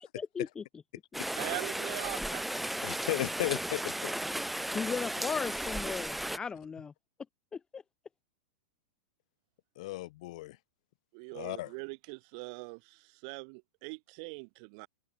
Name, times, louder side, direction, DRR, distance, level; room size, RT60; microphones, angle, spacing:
voice 1, 0.2-0.6 1.1-1.5 4.7-6.9 7.5-7.8, left 6 dB, 15° left, 1.4 m, -37 dB
Rain, 1.1-6.4, right 1 dB, ahead, 0.5 m, -35 dB
voice 2, 1.4-2.5 11.1-14.9, right 36 dB, 45° right, 1.3 m, -42 dB
voice 3, 2.8-4.1 9.8-10.6 11.3-11.7, left 18 dB, 50° left, 2.2 m, -35 dB
figure-of-eight pair, 95°, 5 cm